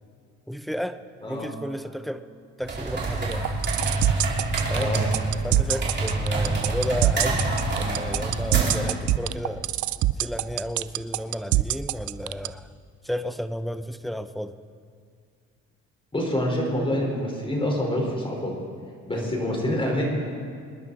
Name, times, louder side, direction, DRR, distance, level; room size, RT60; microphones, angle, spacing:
voice 1, 0.5-2.3 2.6-3.5 4.7-4.9 5.4-7.5 7.8-9.7 10.2-12.7 13.0-14.6 19.1-19.3, equal, ahead, 11 dB, 0.7 m, -32 dB
sound 1, 2.6-8.9, right 2 dB, 35° right, 4.4 m, -27 dB
sound 2, 3.3-12.5, right 16 dB, 75° right, 0.5 m, -23 dB
voice 2, 16.1-18.5 19.1-20.0, left 1 dB, 15° left, -1 dB, 4.7 m, -26 dB
26.0 x 11.0 x 4.2 m, 2.3 s
cardioid pair, 90°, 30 cm